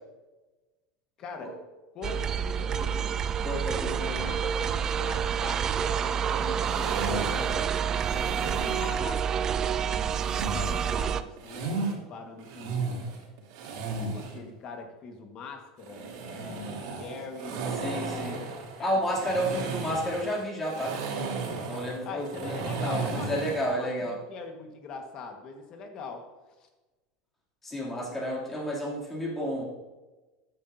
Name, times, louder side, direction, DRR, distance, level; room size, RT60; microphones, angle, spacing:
voice 1, 1.2-1.5 1.9-3.2 3.7-9.9 10.4-13.1 13.8-17.6 18.1-19.0 22.0-26.2, left 4 dB, 40° left, 4 dB, 1.6 m, -42 dB
sound 1, 2.0-11.2, right 8 dB, 25° right, 0.4 m, -28 dB
voice 2, 3.4-4.3 17.8-18.4 18.8-21.0 21.6-24.2 27.6-29.6, equal, 10° left, -4 dB, 2.9 m, -31 dB
sound 2, 6.6-9.0 10.1-11.9 12.4-14.4 15.8-23.7, right 4 dB, 75° right, 3.0 m, -35 dB
13.5 x 10.0 x 2.8 m, 1.2 s
supercardioid pair, 155°, 2 cm